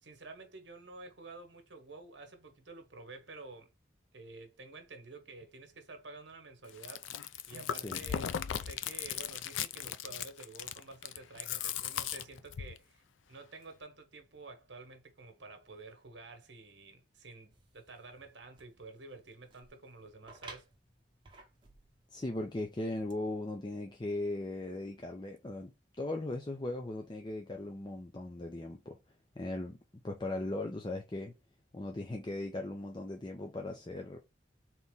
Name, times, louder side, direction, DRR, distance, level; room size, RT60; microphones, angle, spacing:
voice 1, 0.0-3.7 4.1-7.1 7.5-20.7, right 3 dB, 70° right, 1.1 m, -50 dB
Chewing mastication, 6.7-12.8, left 9 dB, 85° left, 0.4 m, -37 dB
sound 1, 17.5-23.1, right 3 dB, 25° right, 1.0 m, -57 dB
voice 2, 22.1-29.0 29.4-29.8 30.0-31.3 31.7-34.2, left 2 dB, 25° left, 0.5 m, -38 dB
4.1 x 3.0 x 3.6 m
head